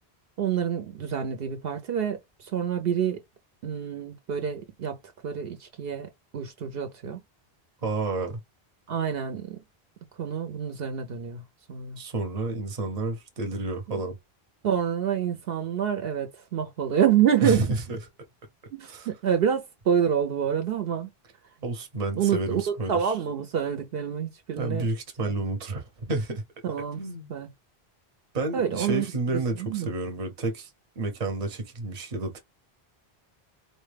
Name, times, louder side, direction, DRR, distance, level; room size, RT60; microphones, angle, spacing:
voice 1, 0.4-3.2 3.6-5.0 5.2-7.2 8.9-9.6 10.2-12.0 13.9-14.0 14.6-17.6 18.8-21.1 22.2-24.9 25.2-25.3 26.6-27.0 27.3-27.5 28.5-29.0 29.3-29.9, right 8 dB, 70° right, 0.8 m, -27 dB
voice 2, 7.8-8.4 12.0-14.1 17.4-18.0 18.8-19.1 21.6-23.1 24.6-26.4 27.0-27.3 28.3-30.7 31.0-32.4, right 2 dB, 40° right, 0.8 m, -30 dB
4.2 x 2.1 x 3.2 m
omnidirectional pair, 1.1 m